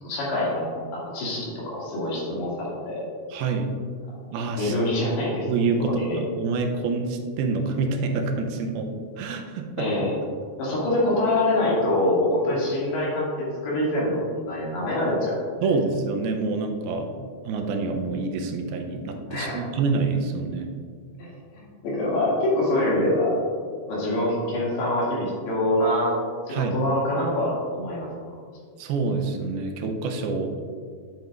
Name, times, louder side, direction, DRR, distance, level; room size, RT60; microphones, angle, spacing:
voice 1, 0.0-3.1 4.6-5.5 6.0-6.2 9.8-10.1 10.6-13.3 13.6-15.8 19.3-19.6 21.2-23.3 23.9-26.1 26.5-28.1, left 1 dB, 85° left, -6 dB, 4.4 m, -25 dB
voice 2, 3.3-3.7 4.3-4.8 5.5-8.9 9.2-9.9 15.6-17.1 17.4-20.7 26.5-26.8 28.8-30.5, right 4 dB, 90° right, 4 dB, 2.6 m, -27 dB
10.5 x 7.9 x 2.5 m, 2.1 s
omnidirectional pair, 4.4 m